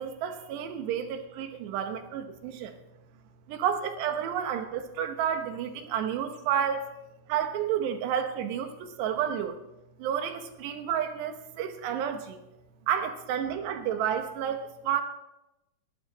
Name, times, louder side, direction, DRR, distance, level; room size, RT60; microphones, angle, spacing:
voice 1, 0.0-2.8 3.5-6.9 7.3-9.6 10.0-12.4 12.9-15.0, right 9 dB, 90° right, 7 dB, 3.4 m, -30 dB
19.0 x 11.0 x 4.2 m, 0.93 s
omnidirectional pair, 4.8 m